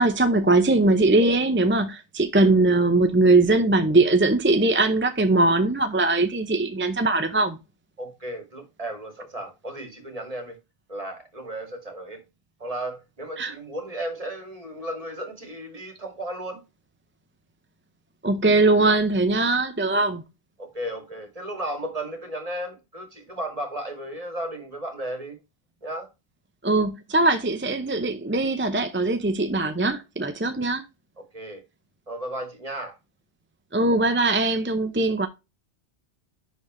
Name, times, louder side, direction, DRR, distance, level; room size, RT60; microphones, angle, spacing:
voice 1, 0.0-7.6 13.4-13.5 18.2-20.2 26.6-30.8 33.7-35.3, right 2 dB, 15° right, 0.5 m, -21 dB
voice 2, 8.0-10.6 10.9-12.2 12.6-16.6 20.6-25.4 25.8-26.1 31.3-31.6 32.1-32.9, right 1 dB, 30° right, 2.4 m, -34 dB
10.5 x 4.1 x 3.1 m
omnidirectional pair, 1.2 m